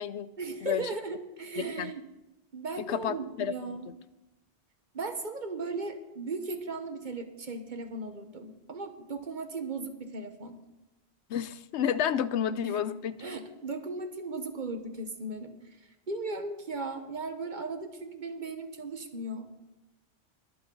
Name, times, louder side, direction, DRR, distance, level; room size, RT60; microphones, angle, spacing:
voice 1, 0.4-2.0 2.5-3.9 4.9-10.6 12.6-12.8 13.2-15.5 16.1-19.5, right 3 dB, 45° right, 7 dB, 1.3 m, -37 dB
voice 2, 2.8-3.5 11.3-13.2, left 9 dB, 85° left, 15 dB, 0.9 m, -30 dB
22.5 x 8.5 x 3.9 m, 0.97 s
omnidirectional pair, 1.1 m